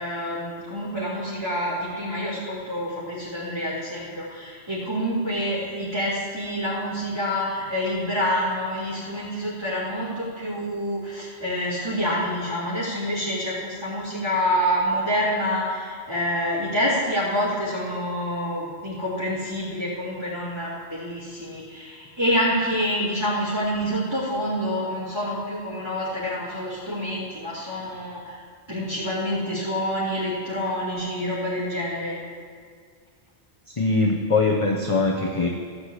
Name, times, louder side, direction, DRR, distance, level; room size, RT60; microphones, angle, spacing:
voice 1, 0.0-28.4 28.7-32.2, equal, 20° right, -11 dB, 3.2 m, -27 dB
voice 2, 33.8-35.5, left 3 dB, 30° left, 1 dB, 0.9 m, -22 dB
14.5 x 6.0 x 8.3 m, 2.1 s
omnidirectional pair, 1.1 m